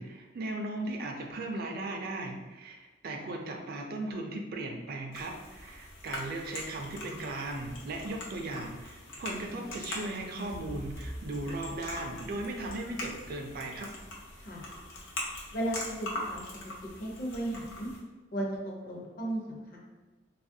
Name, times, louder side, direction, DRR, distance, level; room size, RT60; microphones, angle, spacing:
voice 1, 0.0-13.9, right 2 dB, 50° right, 2 dB, 0.4 m, -37 dB
sound 1, 5.1-18.0, left 2 dB, 85° left, 0.7 m, -42 dB
sound 2, 7.5-15.5, equal, 20° left, 0.3 m, -49 dB
voice 2, 15.5-16.4 17.0-17.9 18.3-19.8, right 1 dB, 50° left, -2 dB, 0.7 m, -35 dB
2.9 x 2.4 x 2.6 m, 1.2 s
head